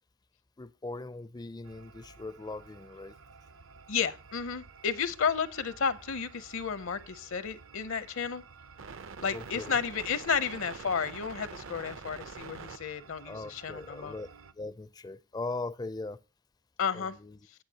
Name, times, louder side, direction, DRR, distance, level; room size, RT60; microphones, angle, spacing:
voice 1, 0.6-3.1 9.3-9.8 13.3-14.3 14.5-16.2 16.9-17.4, left 2 dB, 20° left, 0.4 m, -40 dB
sound 1, 1.6-14.5, right 5 dB, 60° right, 0.6 m, -48 dB
voice 2, 3.9-8.4 9.2-14.1 16.8-17.2, left 6 dB, 60° left, 0.7 m, -32 dB
18.5 x 6.6 x 2.8 m
head